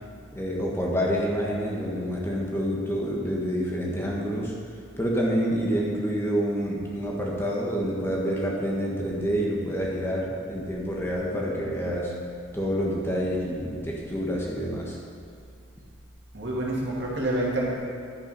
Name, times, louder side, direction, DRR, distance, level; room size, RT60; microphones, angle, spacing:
voice 1, 0.3-4.5 5.0-12.1 12.5-15.0, equal, 10° left, -3 dB, 1.3 m, -27 dB
voice 2, 16.3-17.7, right 1 dB, 60° right, -4 dB, 2.0 m, -27 dB
11.0 x 6.0 x 5.4 m, 2.2 s
head